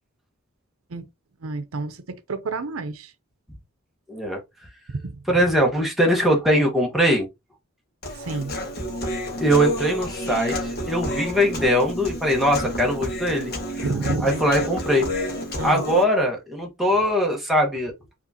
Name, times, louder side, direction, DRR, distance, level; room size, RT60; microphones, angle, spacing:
voice 1, 1.4-2.0 2.3-3.1 5.0-5.1 8.3-8.5 13.8-14.4 15.6-15.8, right 3 dB, 85° right, 0.7 m, -28 dB
voice 2, 4.1-4.4 5.3-7.3 9.4-13.5 13.8-13.9 14.2-15.1 15.6-17.9, equal, ahead, 1.3 m, -21 dB
Human voice, 8.0-16.0, left 1 dB, 50° left, 1.6 m, -30 dB
4.9 x 3.8 x 2.8 m
head